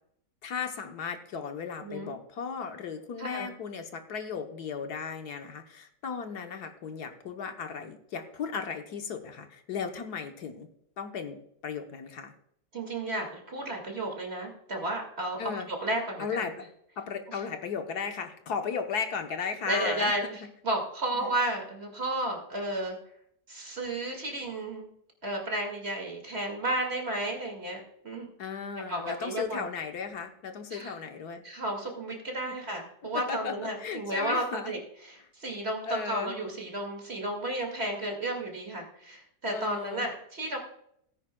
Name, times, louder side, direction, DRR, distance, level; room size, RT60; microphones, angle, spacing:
voice 1, 0.4-10.7 11.0-12.3 15.4-15.7 16.2-16.6 17.0-20.4 21.1-21.3 28.4-31.4 33.1-34.8 35.2-35.3 35.8-36.4 39.5-40.1, left 6 dB, 70° left, 5 dB, 1.5 m, -36 dB
voice 2, 1.8-2.1 3.2-3.5 12.7-15.4 15.7-16.5 17.3-17.4 19.7-23.0 23.5-24.9 25.2-28.3 28.9-29.6 30.7-30.9 31.4-34.8 35.1-40.6, right 1 dB, 35° right, 2 dB, 2.4 m, -33 dB
17.5 x 9.9 x 2.3 m, 0.72 s
omnidirectional pair, 1.8 m